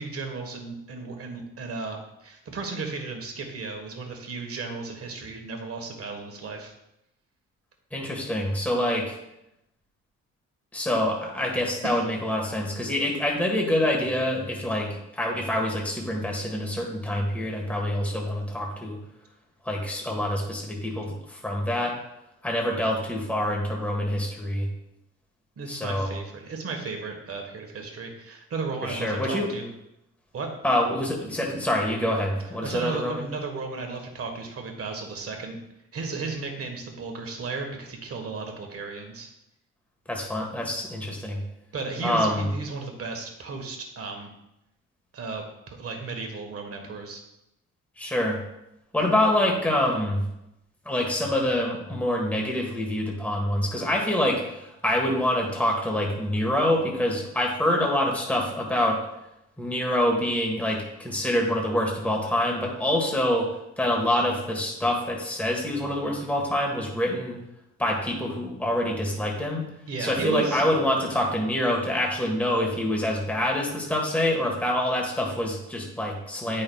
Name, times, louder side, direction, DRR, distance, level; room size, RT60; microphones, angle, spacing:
voice 1, 0.0-6.7 11.8-12.0 25.6-29.7 30.3-30.5 32.6-35.6 35.9-39.3 41.7-44.3 45.1-47.2 69.9-70.6, right 4 dB, 50° right, 3 dB, 1.4 m, -34 dB
voice 2, 7.9-9.1 10.7-19.0 19.6-21.9 22.4-24.7 25.7-26.1 28.8-29.5 30.6-33.3 40.1-41.4 42.0-42.5 48.0-48.4 48.9-50.2 50.8-59.0 59.6-63.5 63.8-67.4 67.8-69.6 70.0-76.6, left 1 dB, 5° left, -1 dB, 1.4 m, -26 dB
8.6 x 5.5 x 2.3 m, 0.86 s
cardioid pair, 90°, 30 cm